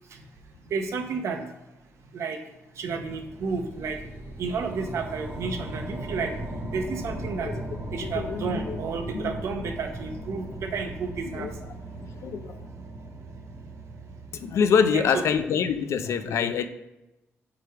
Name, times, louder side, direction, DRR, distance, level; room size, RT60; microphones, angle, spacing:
voice 1, 0.7-1.4 2.1-2.4 2.8-4.0 4.4-6.3 6.7-7.5 7.9-11.5 14.9-15.2, right 5 dB, 75° right, 5 dB, 0.8 m, -31 dB
sound 1, 2.9-15.4, right 1 dB, 50° right, 1.1 m, -38 dB
voice 2, 8.0-8.8 9.1-9.3 11.3-11.5 12.2-12.6 14.4-16.7, left 6 dB, 75° left, 10 dB, 0.5 m, -25 dB
4.9 x 4.9 x 4.6 m, 0.96 s
cardioid pair, 120°, 5 cm